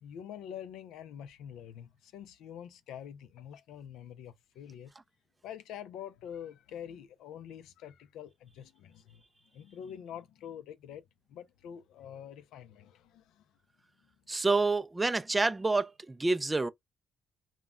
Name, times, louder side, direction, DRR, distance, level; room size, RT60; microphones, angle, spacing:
voice 1, 0.0-4.9 5.4-9.2 9.5-11.0 11.3-13.4, left 9 dB, 90° left, 0.4 m, -46 dB
voice 2, 14.3-16.7, right 3 dB, 20° right, 0.3 m, -28 dB
2.2 x 2.1 x 3.4 m
cardioid pair, 90°, 0 cm